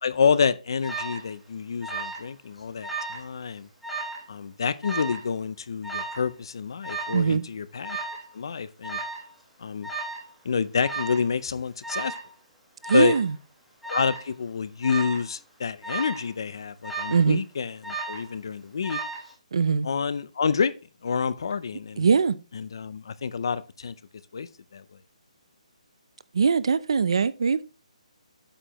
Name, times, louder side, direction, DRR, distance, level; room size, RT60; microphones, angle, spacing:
voice 1, 0.0-3.7 4.3-8.0 8.3-9.0 9.6-9.9 10.4-12.2 12.9-13.2 13.9-19.0 19.8-20.7 21.0-22.1 22.5-23.9 24.3-24.8, left 6 dB, 35° left, 0.5 m, -28 dB
Alarm, 0.8-1.3 1.8-2.3 2.6-3.3 3.8-4.2 4.8-5.3 5.8-6.3 6.8-7.3 7.8-8.3 8.8-9.3 9.8-10.3 10.8-11.3 11.8-12.3 12.8-13.3 13.8-14.3 14.8-15.3 15.8-16.3 16.8-17.3 17.8-18.3 18.8-19.3, right 3 dB, ahead, 1.3 m, -34 dB
voice 2, 7.1-7.4 12.9-13.3 17.1-17.4 19.5-19.9 22.0-22.4 26.3-27.6, right 5 dB, 45° right, 0.5 m, -21 dB
8.8 x 6.8 x 3.0 m
hypercardioid pair, 180°, 4 cm